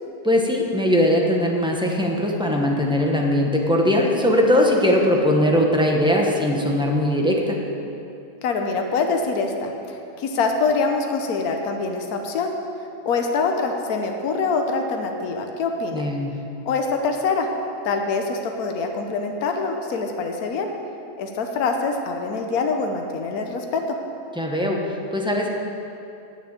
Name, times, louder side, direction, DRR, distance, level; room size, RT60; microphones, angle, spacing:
voice 1, 0.2-7.6 15.9-16.4 24.4-25.5, left 1 dB, 5° right, -1 dB, 0.9 m, -20 dB
voice 2, 8.4-12.5 13.0-16.1 16.6-17.5 17.8-20.7 21.2-24.0, left 4 dB, 75° left, 4 dB, 1.4 m, -24 dB
9.4 x 6.9 x 8.8 m, 2.7 s
omnidirectional pair, 1.6 m